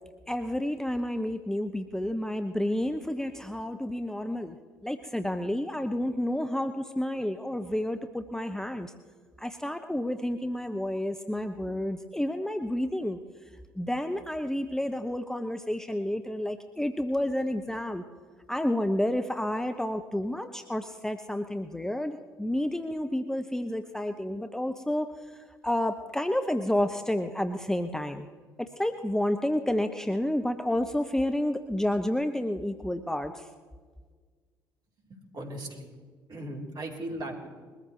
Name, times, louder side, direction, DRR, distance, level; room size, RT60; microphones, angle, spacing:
voice 1, 0.3-4.6 4.8-8.9 9.4-13.2 13.8-18.0 18.5-25.1 25.6-28.3 28.6-33.5, left 1 dB, 5° left, 7 dB, 0.8 m, -30 dB
voice 2, 35.0-35.9 36.3-37.5, right 1 dB, 40° right, -1 dB, 3.8 m, -38 dB
22.0 x 14.0 x 3.2 m, 1.5 s
figure-of-eight pair, 50°, 11 cm